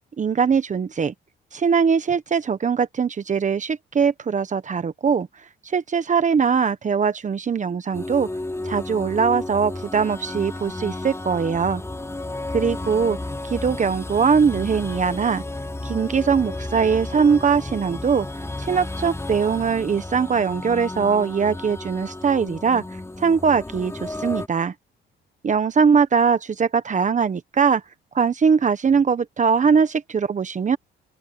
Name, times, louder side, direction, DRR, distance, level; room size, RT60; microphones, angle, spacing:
voice 1, 0.2-1.1 1.5-5.3 5.6-8.3 8.6-11.8 12.5-13.2 13.4-15.4 15.8-18.3 18.6-22.8 23.2-24.7 25.4-27.8 28.1-30.8, right 6 dB, 40° right, 1.2 m, -21 dB
sound 1, 7.9-24.5, left 2 dB, 15° left, 5.2 m, -32 dB
open air
cardioid pair, 90°, 20 cm